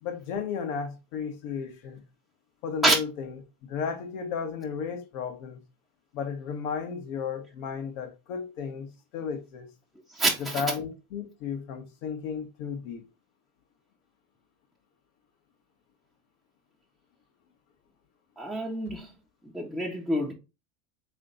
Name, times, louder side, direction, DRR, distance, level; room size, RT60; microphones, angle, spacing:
voice 1, 0.0-2.0 2.6-3.3 3.7-5.6 6.1-9.7 10.4-13.0, left 6 dB, 70° left, 1.4 m, -34 dB
voice 2, 10.1-10.6 18.4-19.1 19.5-20.3, right 2 dB, ahead, 0.8 m, -27 dB
3.8 x 3.3 x 3.9 m
hypercardioid pair, 100°, 39 cm